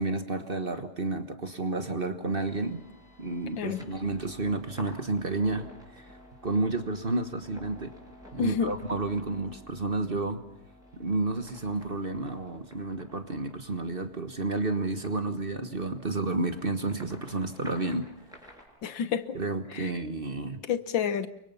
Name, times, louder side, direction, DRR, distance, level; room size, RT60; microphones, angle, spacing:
voice 1, 0.0-2.8 3.2-5.6 5.9-6.1 6.4-7.9 8.3-10.4 10.9-18.1 19.3-20.6, right 2 dB, 30° right, 8 dB, 1.4 m, -31 dB
sound 1, 2.4-18.7, left 1 dB, ahead, 6.6 m, -52 dB
voice 2, 8.4-8.7 18.8-19.4 19.7-19.9 20.7-21.3, left 7 dB, 85° left, 12 dB, 1.9 m, -29 dB
29.5 x 24.5 x 5.7 m, 0.76 s
omnidirectional pair, 2.0 m